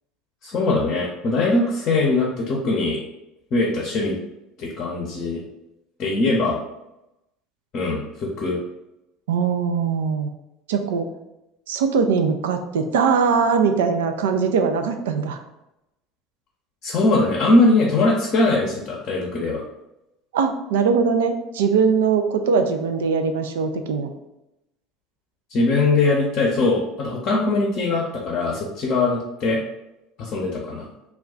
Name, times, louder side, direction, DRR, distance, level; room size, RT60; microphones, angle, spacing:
voice 1, 0.4-3.0 3.5-4.2 4.6-5.4 6.0-6.6 7.7-8.6 16.8-19.6 25.5-29.6 30.2-30.9, left 2 dB, 50° left, -2 dB, 0.6 m, -21 dB
voice 2, 9.3-10.3 10.7-11.1 11.7-15.4 20.3-24.1, right 5 dB, 75° right, 6 dB, 0.3 m, -21 dB
2.3 x 2.2 x 3.6 m, 0.91 s
hypercardioid pair, 70°, 0 cm